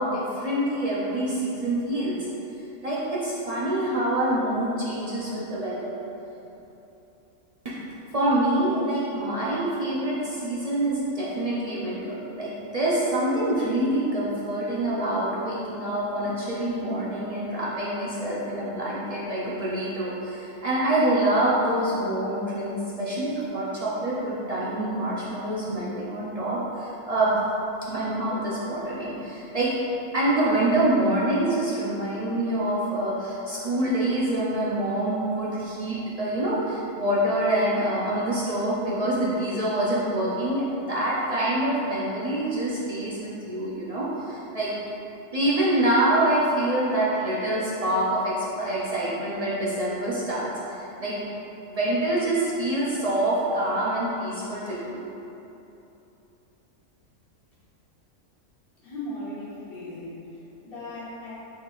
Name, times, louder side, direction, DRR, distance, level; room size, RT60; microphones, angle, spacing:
voice 1, 0.0-2.3 2.8-5.9 7.6-7.7 8.1-27.3 27.9-29.7 30.1-44.7 45.3-51.3 51.7-55.0, right 1 dB, 55° right, -8 dB, 0.4 m, -26 dB
voice 2, 58.8-61.4, left 1 dB, 45° left, -10 dB, 1.4 m, -38 dB
5.1 x 3.8 x 2.4 m, 3.0 s
omnidirectional pair, 1.4 m